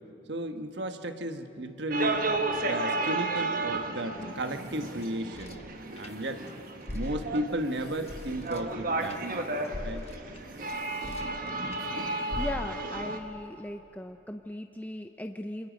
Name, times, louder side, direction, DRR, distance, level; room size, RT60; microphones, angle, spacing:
voice 1, 0.3-2.3 2.6-5.6 6.0-6.4 6.9-9.5 9.8-10.1, right 1 dB, 65° right, 7 dB, 1.3 m, -34 dB
sound 1, 1.9-13.2, right 2 dB, 45° right, 1.3 m, -33 dB
sound 2, 4.2-6.5 6.8-11.9 12.3-13.0, left 1 dB, 35° left, 0.9 m, -42 dB
voice 2, 12.3-15.7, left 1 dB, 10° left, 5 dB, 0.5 m, -38 dB
27.5 x 26.5 x 5.2 m, 2.8 s
head